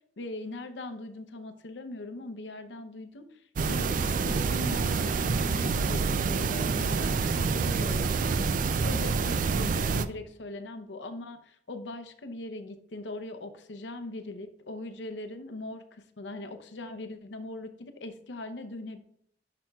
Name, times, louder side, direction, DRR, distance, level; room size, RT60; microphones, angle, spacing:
voice 1, 0.2-19.0, left 2 dB, 85° left, 9 dB, 0.7 m, -40 dB
sound 1, 3.6-10.1, right 4 dB, 50° right, 0.4 m, -27 dB
10.5 x 5.9 x 2.3 m, 0.70 s
head